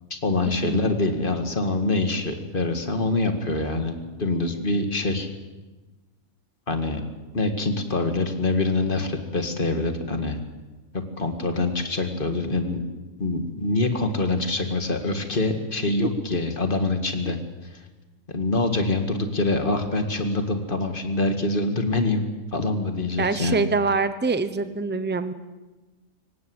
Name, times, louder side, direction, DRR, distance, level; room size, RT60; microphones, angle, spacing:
voice 1, 0.1-5.3 6.7-7.0 7.3-10.4 11.2-12.8 13.2-17.4 18.3-22.2 22.5-23.6, left 2 dB, 40° left, 6 dB, 2.2 m, -25 dB
voice 2, 23.2-25.3, right 4 dB, 10° right, 12 dB, 0.8 m, -25 dB
24.0 x 18.5 x 8.0 m, 1.2 s
omnidirectional pair, 1.3 m